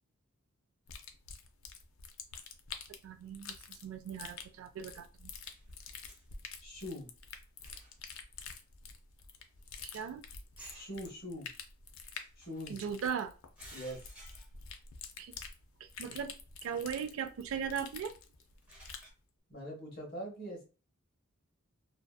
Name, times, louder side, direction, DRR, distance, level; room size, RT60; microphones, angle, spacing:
sound 1, 0.9-19.1, left 6 dB, 70° left, 0.4 m, -48 dB
voice 1, 3.0-5.3 9.8-10.2 12.7-13.3 15.2-15.3 15.8-16.3 16.6-18.1, right 7 dB, 75° right, 0.3 m, -38 dB
sound 2, 5.4-6.3 6.8-6.9 7.6-8.1 8.5-8.7 9.1-9.2 9.4-10.2 10.6-11.1 12.0-12.9 13.6-14.8 15.2-15.3 16.7-16.8 18.4-19.1, right 1 dB, 5° right, 0.6 m, -56 dB
voice 2, 6.6-7.1 10.7-11.5 12.4-12.8 13.7-14.0 19.5-20.6, equal, 45° left, 0.9 m, -42 dB
2.6 x 2.2 x 2.2 m
head